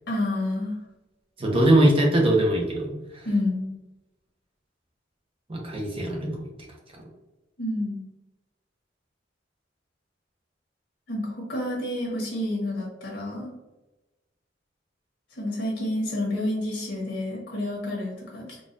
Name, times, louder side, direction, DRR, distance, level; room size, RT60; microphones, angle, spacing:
voice 1, 0.1-0.8 3.2-3.7 7.6-8.0 11.1-13.5 15.3-18.6, left 1 dB, 65° left, -3 dB, 1.2 m, -29 dB
voice 2, 1.4-3.3 5.5-6.5, right 1 dB, 30° right, -1 dB, 0.8 m, -22 dB
3.9 x 2.4 x 2.5 m, 1.0 s
head